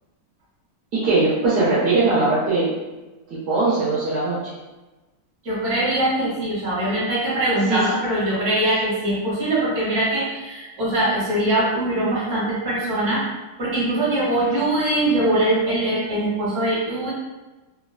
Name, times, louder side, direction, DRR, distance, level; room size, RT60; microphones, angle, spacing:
voice 1, 0.9-2.8 3.5-4.4 7.7-7.8, right 3 dB, 75° right, -8 dB, 1.3 m, -20 dB
voice 2, 5.4-13.2 13.6-17.1, right 1 dB, 50° right, -7 dB, 1.4 m, -22 dB
3.3 x 2.3 x 2.2 m, 1.1 s
omnidirectional pair, 1.8 m